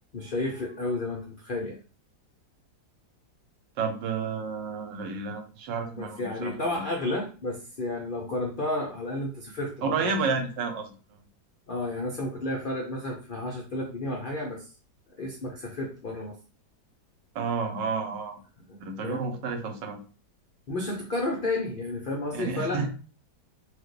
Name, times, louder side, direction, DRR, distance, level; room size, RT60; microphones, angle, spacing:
voice 1, 0.1-1.8 6.0-10.1 11.7-14.7 15.2-16.3 18.7-18.8 19.0-19.2 20.7-22.9, left 2 dB, 90° left, 0 dB, 0.4 m, -31 dB
voice 2, 3.8-6.8 9.8-11.2 17.3-18.4 18.8-20.0 22.3-22.9, right 5 dB, 85° right, 4 dB, 1.5 m, -31 dB
4.6 x 2.4 x 3.2 m, 0.37 s
omnidirectional pair, 1.9 m